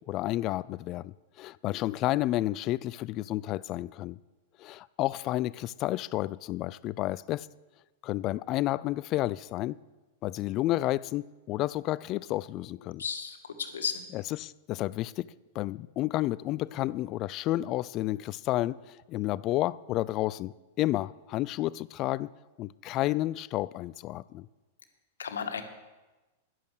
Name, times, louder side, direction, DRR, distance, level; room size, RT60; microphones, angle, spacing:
voice 1, 0.1-4.2 4.6-7.5 8.0-9.8 10.2-13.0 14.1-15.3 15.5-22.3 22.6-24.5, left 16 dB, 40° left, 0.4 m, -31 dB
voice 2, 13.0-14.0 25.2-25.6, left 6 dB, 80° left, 1.6 m, -34 dB
12.0 x 11.0 x 6.5 m
hypercardioid pair, 105°, 0 cm